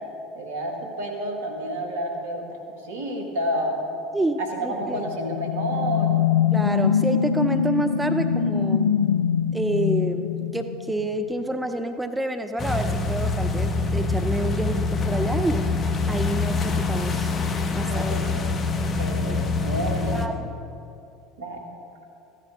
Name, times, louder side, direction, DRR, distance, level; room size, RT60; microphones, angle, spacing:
voice 1, 0.3-3.8 4.4-6.1 17.9-18.2 19.0-20.2 21.4-21.7, equal, 75° right, 2 dB, 1.7 m, -30 dB
voice 2, 4.1-5.0 6.5-8.9 9.5-15.7 16.1-17.3 17.7-18.0 19.3-19.4 20.1-20.5, right 1 dB, 10° right, 7 dB, 0.6 m, -28 dB
sound 1, 4.8-11.3, left 8 dB, 90° left, 0.3 m, -23 dB
sound 2, 12.6-20.3, left 3 dB, 30° left, 0.9 m, -25 dB
14.5 x 11.0 x 3.7 m, 2.7 s
figure-of-eight pair, 70°, 0 cm